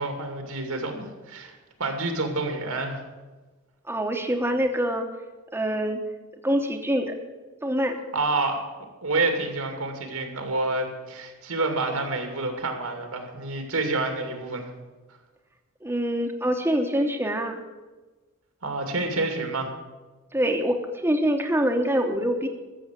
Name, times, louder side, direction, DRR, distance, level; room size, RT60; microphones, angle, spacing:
voice 1, 0.0-1.5 1.8-3.0 8.1-8.6 9.0-14.7 18.6-19.7, right 2 dB, 80° right, 4 dB, 2.5 m, -28 dB
voice 2, 3.9-5.1 5.5-6.0 6.4-7.2 7.6-8.0 15.8-17.6 20.3-22.5, equal, 10° right, 3 dB, 1.0 m, -25 dB
14.0 x 7.0 x 8.4 m, 1.2 s
head